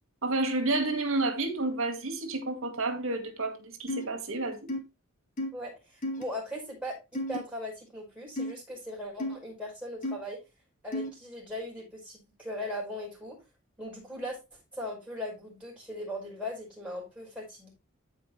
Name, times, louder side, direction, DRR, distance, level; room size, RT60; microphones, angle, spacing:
voice 1, 0.2-4.7, right 2 dB, 70° right, 2.1 m, -30 dB
sound 1, 3.9-4.0 4.7-4.8 5.4-5.5 6.0-6.2 7.1-7.4 8.4-8.5 9.2-9.3 10.0-10.1 10.9-11.1, left 1 dB, 35° left, 1.5 m, -32 dB
voice 2, 5.5-10.4 10.8-13.4 13.8-17.7, left 1 dB, 5° right, 6.0 m, -39 dB
14.0 x 5.0 x 3.3 m
head